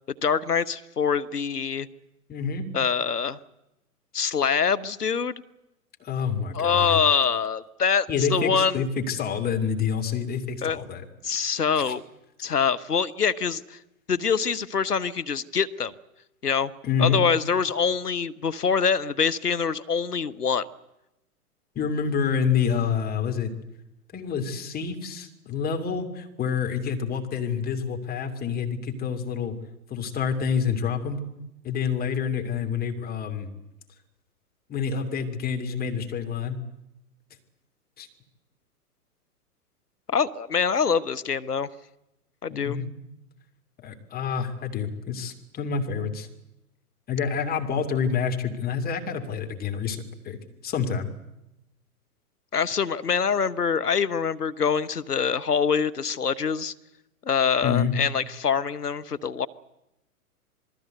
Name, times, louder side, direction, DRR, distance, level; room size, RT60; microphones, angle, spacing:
voice 1, 0.2-1.9 2.7-3.4 4.1-5.4 6.5-8.9 10.6-10.8 11.2-12.0 12.4-13.8 14.1-15.9 16.4-16.7 17.0-20.6 40.1-41.7 42.4-42.8 52.5-56.7 57.2-59.5, left 6 dB, 85° left, 13 dB, 1.1 m, -24 dB
voice 2, 2.3-2.7 6.0-7.0 8.1-11.0 11.8-11.9 16.8-17.3 21.7-23.5 24.1-29.6 29.9-31.2 31.6-33.5 34.7-36.6 38.0-38.1 42.5-42.9 43.8-46.3 47.1-50.0 50.2-50.4 50.6-51.1 57.6-58.0, left 6 dB, 20° left, 5 dB, 2.8 m, -27 dB
27.0 x 19.5 x 8.0 m, 0.90 s
figure-of-eight pair, 110°, 45 cm